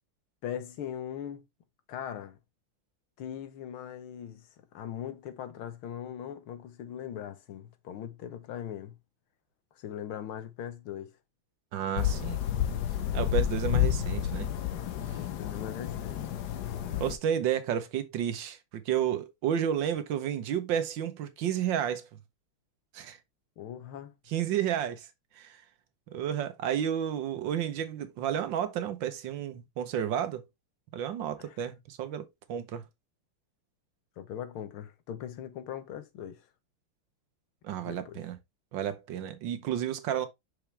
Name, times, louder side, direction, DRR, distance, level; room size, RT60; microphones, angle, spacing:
voice 1, 0.4-1.4 1.9-2.4 3.2-4.5 4.7-9.0 9.8-11.1 15.1-16.2 23.6-24.1 31.4-31.6 34.2-36.5 37.8-38.2, left 9 dB, 90° left, 1.8 m, -40 dB
voice 2, 11.7-12.4 13.1-14.5 17.0-22.0 22.9-23.2 24.3-25.1 25.4-25.6 26.1-30.4 30.9-32.8 37.6-38.4 38.7-40.3, right 9 dB, 70° right, 1.5 m, -31 dB
sound 1, 12.0-17.2, left 11 dB, 65° left, 1.2 m, -30 dB
6.0 x 5.0 x 3.2 m
omnidirectional pair, 2.2 m